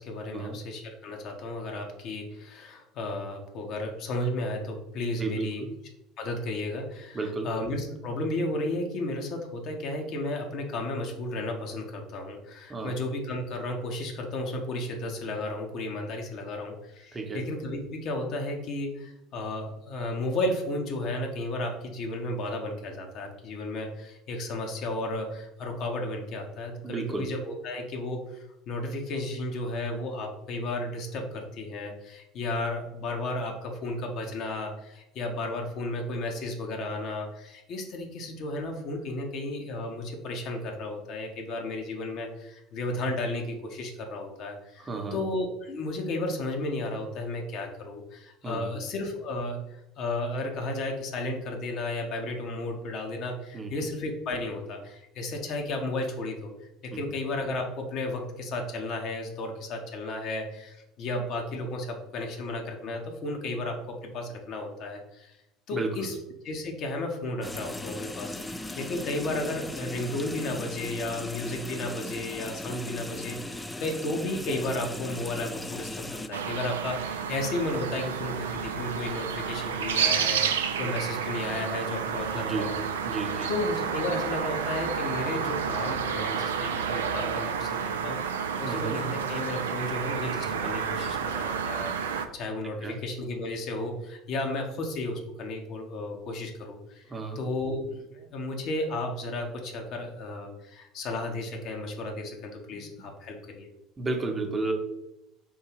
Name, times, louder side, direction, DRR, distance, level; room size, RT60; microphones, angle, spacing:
voice 1, 0.0-5.6 6.2-56.5 56.8-65.4 65.7-66.2 66.4-82.8 83.5-103.7, left 2 dB, 55° left, 2 dB, 0.9 m, -33 dB
voice 2, 5.2-5.7 7.1-7.5 12.7-13.0 17.1-17.4 26.8-27.2 44.8-45.2 48.4-48.8 53.5-53.7 56.9-57.0 65.7-66.1 82.3-82.7 83.0-83.5 88.6-89.0 92.8-93.0 97.1-97.4 102.7-102.8 104.0-104.7, right 3 dB, 25° right, 3 dB, 0.9 m, -32 dB
sound 1, 67.4-76.3, left 1 dB, 10° left, 0.3 m, -38 dB
sound 2, 76.3-92.3, right 7 dB, 80° right, 0.3 m, -30 dB
3.7 x 2.7 x 4.6 m, 0.90 s
figure-of-eight pair, 65°, 0 cm